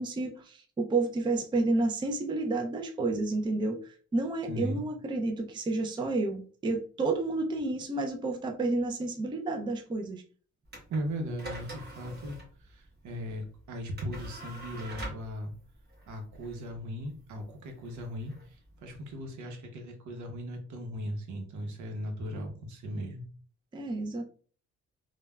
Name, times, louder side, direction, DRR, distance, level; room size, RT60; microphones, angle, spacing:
voice 1, 0.0-10.2 23.7-24.3, right 2 dB, 15° right, 3 dB, 0.4 m, -30 dB
voice 2, 4.5-4.8 10.9-15.5 16.1-23.2, equal, 75° right, 4 dB, 0.8 m, -38 dB
sound 1, 10.7-19.1, right 1 dB, 35° right, 1.3 m, -45 dB
3.2 x 2.2 x 2.2 m, 0.42 s
cardioid pair, 90°, 30 cm